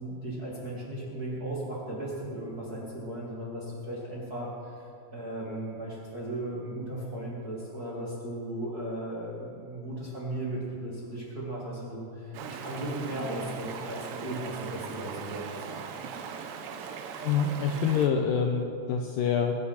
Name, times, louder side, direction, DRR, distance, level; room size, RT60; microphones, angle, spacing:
voice 1, 0.0-4.9 5.1-15.8, right 1 dB, 35° right, -6 dB, 1.7 m, -36 dB
Stream, 12.3-18.1, right 6 dB, 85° right, 3.1 m, -39 dB
voice 2, 17.2-19.6, left 6 dB, 85° left, 4 dB, 2.0 m, -26 dB
22.0 x 8.5 x 5.7 m, 2.5 s
omnidirectional pair, 4.8 m